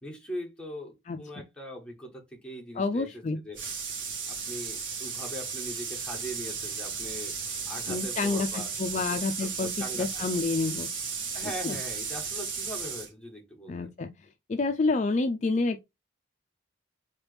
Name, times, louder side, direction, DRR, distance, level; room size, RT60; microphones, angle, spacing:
voice 1, 0.0-3.6 4.3-7.3 7.7-10.4 11.3-13.9, equal, 5° left, 1.4 m, -41 dB
voice 2, 2.8-3.4 7.9-9.7 10.0-10.9 11.6-11.8 13.7-14.1 14.5-15.8, left 3 dB, 35° left, 0.3 m, -28 dB
sound 1, 3.5-13.1, right 5 dB, 85° right, 1.6 m, -35 dB
3.9 x 3.3 x 3.2 m
head